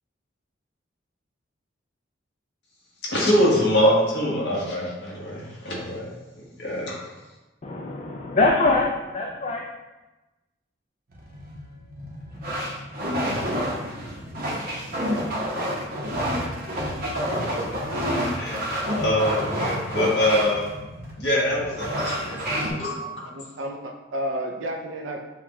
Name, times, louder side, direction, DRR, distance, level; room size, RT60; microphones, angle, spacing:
voice 1, 3.1-6.1 6.6-7.0 17.9-20.7 21.2-23.0, equal, 60° left, -4 dB, 1.3 m, -24 dB
voice 2, 7.6-9.7, left 2 dB, 35° left, 0 dB, 0.3 m, -23 dB
sound 1, 11.1-22.7, equal, 50° right, 0.8 m, -29 dB
voice 3, 23.0-25.2, equal, 80° right, 3 dB, 0.6 m, -32 dB
7.0 x 2.3 x 2.9 m, 1.1 s
head